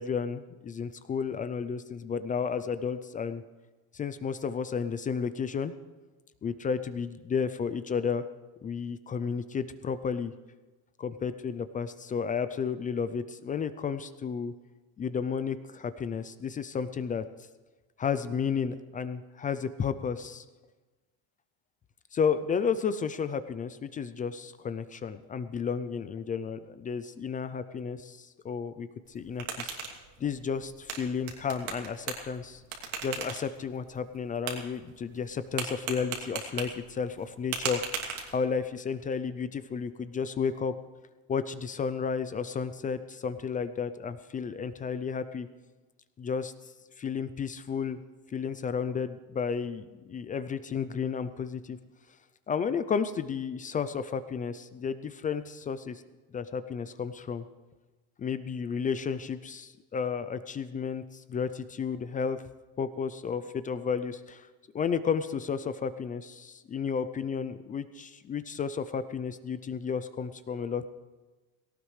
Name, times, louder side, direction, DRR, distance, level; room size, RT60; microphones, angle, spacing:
voice 1, 0.0-3.4 3.9-5.7 6.4-8.2 8.6-10.3 11.0-14.5 15.0-17.3 18.0-20.4 22.1-29.8 30.2-32.6 33.0-37.8 38.3-40.7 41.3-45.5 46.2-46.5 47.0-48.0 48.3-51.8 52.5-56.0 56.3-57.4 58.2-62.5 62.8-64.5 64.7-70.9, left 6 dB, 20° left, 12 dB, 0.4 m, -32 dB
sound 1, 29.0-38.7, right 6 dB, 80° right, 2.9 m, -39 dB
18.5 x 17.5 x 3.2 m, 1.2 s
cardioid pair, 155°, 39 cm